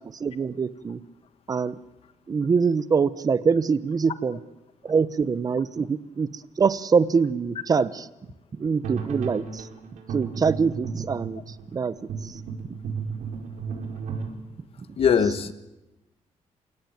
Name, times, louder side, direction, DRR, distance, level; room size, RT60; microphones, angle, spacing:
voice 1, 0.2-1.0 1.5-1.8 2.3-4.4 4.8-8.1 8.6-9.7 10.1-11.4 11.7-11.9 12.2-12.3, right 5 dB, 30° right, 16 dB, 0.9 m, -24 dB
sound 1, 8.8-14.3, right 5 dB, 85° right, 4.9 m, -34 dB
voice 2, 15.0-15.5, left 7 dB, 50° left, 12 dB, 1.5 m, -21 dB
29.0 x 18.0 x 9.3 m, 1.0 s
cardioid pair, 150°, 12 cm